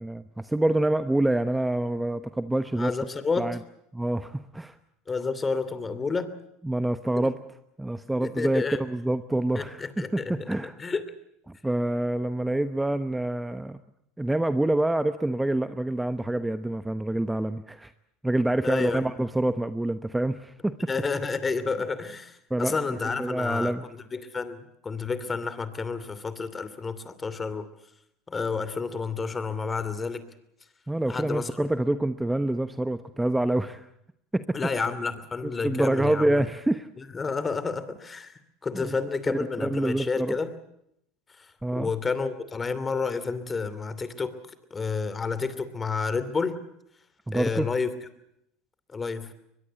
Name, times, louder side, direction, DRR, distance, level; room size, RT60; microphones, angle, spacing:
voice 1, 0.0-2.9 3.4-3.6 3.9-4.8 6.6-7.4 7.8-10.8 11.5-13.8 14.2-17.9 18.2-20.7 22.5-23.8 30.9-33.9 34.3-34.9 35.4-36.9 38.7-39.0 39.3-40.4 41.6-41.9 47.3-47.7, right 1 dB, 10° right, 11 dB, 1.0 m, -27 dB
voice 2, 2.7-3.6 5.1-6.3 7.2-7.3 8.2-8.8 9.5-11.0 18.6-19.0 20.9-27.7 28.3-30.2 31.1-31.5 34.5-36.4 37.0-40.5 41.4-41.5 41.7-44.3 44.7-46.6 47.3-47.9 48.9-49.3, left 4 dB, 25° left, 13 dB, 2.9 m, -30 dB
22.5 x 22.0 x 8.1 m, 0.77 s
hypercardioid pair, 85°, 0 cm